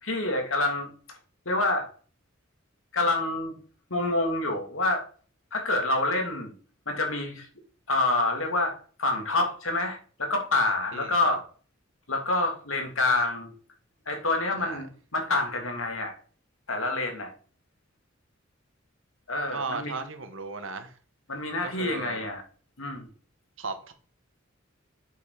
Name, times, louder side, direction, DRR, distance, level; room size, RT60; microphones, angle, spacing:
voice 1, 0.0-1.2 1.5-1.9 2.9-3.5 3.9-5.1 5.5-6.5 6.9-7.5 7.9-11.4 12.1-13.5 14.1-16.1 16.7-17.3 19.3-20.0 21.3-22.4 22.8-23.1, left 2 dB, 85° left, 2.6 m, -27 dB
voice 2, 10.9-11.4 14.6-14.8 19.5-20.9 21.6-22.2 23.6-23.9, right 3 dB, 70° right, 1.5 m, -36 dB
8.2 x 7.0 x 5.0 m
head